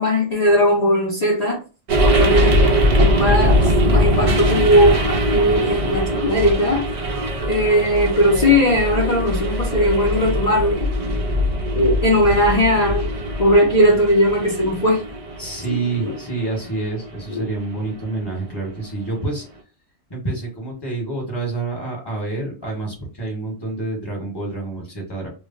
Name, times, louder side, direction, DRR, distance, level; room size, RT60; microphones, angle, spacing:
voice 1, 0.0-1.6 2.0-2.7 3.0-6.9 7.5-10.9 11.7-13.1 13.4-15.0 15.7-15.8 16.0-16.1 17.3-17.5, equal, 55° left, -2 dB, 0.4 m, -18 dB
sound 1, 1.9-18.2, equal, 65° right, 0.3 m, -21 dB
voice 2, 15.4-19.4 20.1-25.3, right 3 dB, 20° left, -1 dB, 1.0 m, -27 dB
2.3 x 2.1 x 3.7 m, 0.33 s
omnidirectional pair, 1.3 m